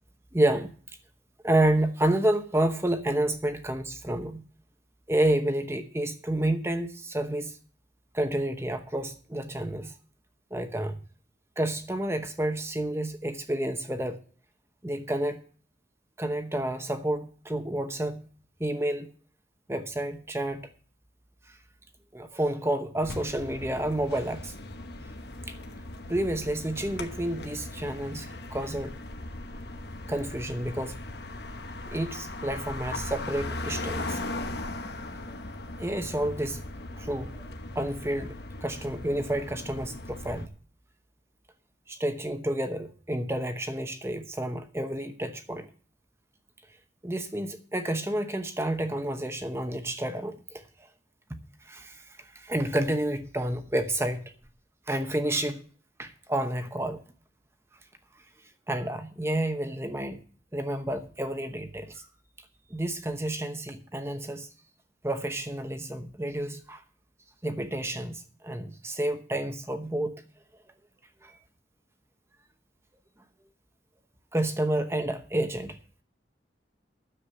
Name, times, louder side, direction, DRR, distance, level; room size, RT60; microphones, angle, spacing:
voice 1, 0.3-0.7 1.4-4.4 5.1-7.6 8.1-9.9 10.5-11.0 11.6-14.2 14.8-15.4 16.2-18.2 18.6-19.1 19.7-20.7 21.5-21.6 22.1-24.5 25.5-25.6 26.1-29.0 30.1-31.0 31.9-34.2 35.8-36.6 37.0-37.5 37.7-40.5 41.9-45.7 47.0-50.6 51.6-54.2 54.9-55.6 56.0-57.0 58.7-60.2 60.5-62.1 62.7-64.5 65.0-66.8 67.4-70.2 71.2-71.4 74.3-75.8, right 1 dB, 15° right, 0.9 m, -30 dB
sound 1, 23.0-40.5, left 2 dB, 60° left, 1.1 m, -38 dB
10.0 x 7.3 x 7.7 m
head